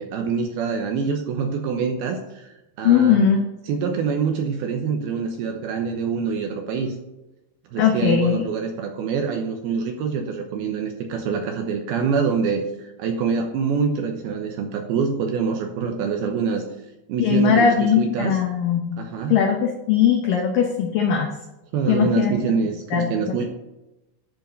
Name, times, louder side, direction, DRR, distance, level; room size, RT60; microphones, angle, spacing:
voice 1, 0.0-2.5 2.8-3.2 3.7-6.9 7.7-16.6 17.1-18.4 19.0-19.4 21.7-23.4, right 5 dB, 75° right, 3 dB, 2.4 m, -25 dB
voice 2, 2.8-3.4 7.8-8.4 17.2-19.0 19.3-21.3 21.9-22.3 22.9-23.4, left 7 dB, 80° left, 2 dB, 2.0 m, -19 dB
11.5 x 5.3 x 6.7 m, 0.97 s
omnidirectional pair, 5.3 m